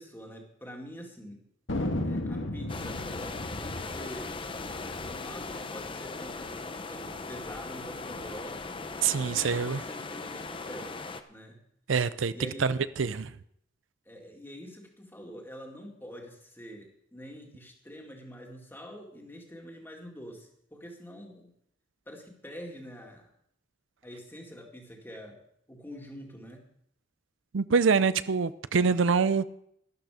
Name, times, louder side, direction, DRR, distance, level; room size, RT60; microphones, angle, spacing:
voice 1, 0.0-1.4 2.0-8.8 9.2-10.9 11.3-11.6 12.3-12.8 14.1-21.5 22.1-23.3 24.0-25.4 25.7-26.6, equal, 10° left, 2.2 m, -46 dB
Thunder, 1.7-6.5 6.8-6.9 7.1-7.6 8.1-9.3, left 1 dB, 80° left, 1.7 m, -36 dB
sound 1, 2.7-11.2, left 3 dB, 25° left, 0.7 m, -39 dB
voice 2, 9.0-9.8 11.9-13.3 27.5-29.4, right 5 dB, 80° right, 0.5 m, -25 dB
12.5 x 12.0 x 5.0 m
head